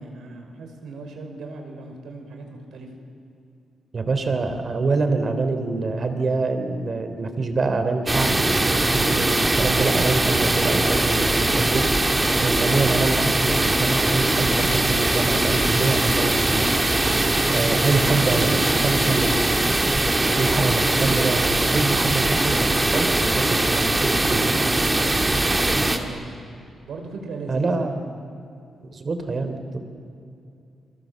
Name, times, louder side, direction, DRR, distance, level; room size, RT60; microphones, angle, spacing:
voice 1, 0.0-2.9 17.8-19.5 25.9-26.2 26.8-28.0, right 3 dB, 80° right, 4 dB, 5.2 m, -36 dB
voice 2, 3.9-16.7 17.5-18.6 18.8-19.4 20.4-24.5 27.5-28.0 28.9-29.8, right 3 dB, 45° right, 7 dB, 3.5 m, -25 dB
sound 1, 8.1-26.0, right 2 dB, 20° right, 2.5 m, -21 dB
29.5 x 23.0 x 7.7 m, 2.6 s
cardioid pair, 85°, 0 cm